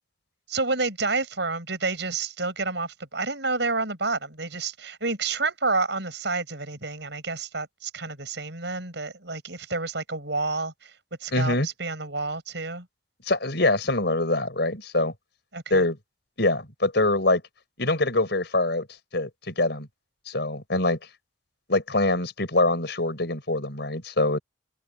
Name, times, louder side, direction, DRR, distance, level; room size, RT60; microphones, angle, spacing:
voice 1, 0.5-10.9 11.2-12.9 15.5-15.8, right 3 dB, 65° right, 7.4 m, -29 dB
voice 2, 11.3-11.7 13.3-15.1 15.7-16.0 16.4-17.4 17.8-18.9 19.1-19.9 20.3-21.0 21.7-24.4, left 2 dB, 60° left, 6.0 m, -24 dB
head